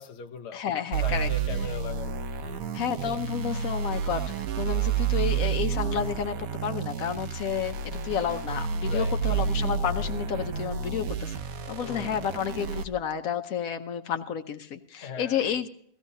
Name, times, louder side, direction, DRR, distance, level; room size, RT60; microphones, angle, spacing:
voice 1, 0.0-0.6 1.0-2.7 8.8-9.1 11.8-12.1 15.0-15.4, left 4 dB, 55° left, 1.1 m, -39 dB
voice 2, 0.5-1.3 1.6-1.7 2.7-7.8 8.0-11.3 11.7-15.7, left 8 dB, 80° left, 1.2 m, -31 dB
sound 1, 0.9-12.8, right 6 dB, 85° right, 1.3 m, -30 dB
17.5 x 15.5 x 2.7 m
omnidirectional pair, 1.4 m